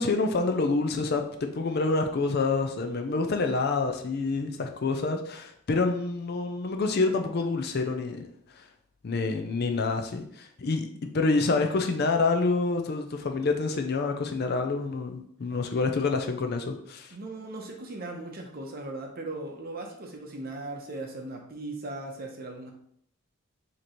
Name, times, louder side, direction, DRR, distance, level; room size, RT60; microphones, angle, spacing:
voice 1, 0.0-8.2 8.6-8.7 9.0-10.9 11.1-17.2, left 3 dB, 45° left, 5 dB, 0.4 m, -27 dB
voice 2, 17.1-22.7, right 2 dB, 45° right, 2 dB, 0.7 m, -38 dB
5.1 x 2.9 x 3.0 m, 0.68 s
head